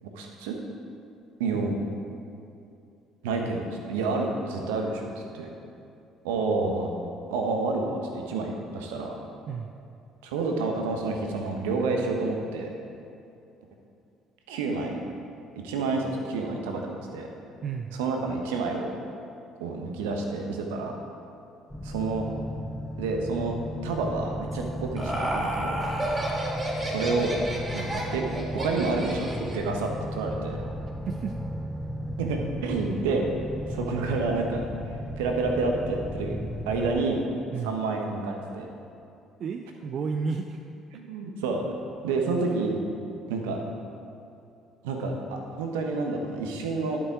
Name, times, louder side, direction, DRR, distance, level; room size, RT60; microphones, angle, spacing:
voice 1, 0.0-0.5 1.4-1.7 3.2-5.5 6.2-6.9 7.3-9.2 10.2-12.7 14.5-14.9 15.6-17.3 18.0-18.9 19.6-20.9 21.8-22.3 23.0-23.5 23.8-25.8 26.8-27.4 27.7-28.2 28.5-30.6 32.2-33.3 33.7-34.7 35.2-36.4 36.7-37.2 37.6-38.7 40.9-41.6 42.0-42.8 43.3-43.6 44.8-47.0, right 3 dB, 70° right, 2 dB, 1.2 m, -29 dB
voice 2, 17.6-18.0 31.0-31.4 37.5-37.8 39.4-40.6 42.4-42.6, right 5 dB, 50° right, 5 dB, 0.5 m, -32 dB
sound 1, 21.7-37.0, equal, ahead, 0.9 m, -35 dB
Laughter, 24.5-29.7, right 1 dB, 25° right, 2.8 m, -31 dB
11.5 x 7.5 x 4.8 m, 2.7 s
figure-of-eight pair, 50°, 0 cm